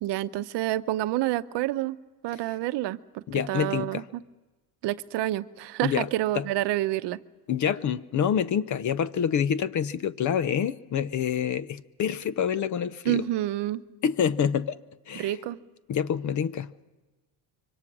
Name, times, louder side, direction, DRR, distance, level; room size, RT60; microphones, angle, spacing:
voice 1, 0.0-2.0 2.2-4.2 4.8-7.2 13.0-13.8 15.1-15.6, right 15 dB, 65° right, 0.8 m, -28 dB
voice 2, 3.3-4.0 5.8-6.1 7.5-13.2 14.0-14.8 15.1-15.3 15.9-16.7, left 8 dB, 40° left, 0.7 m, -27 dB
25.5 x 24.0 x 6.1 m
cardioid pair, 130°, 45 cm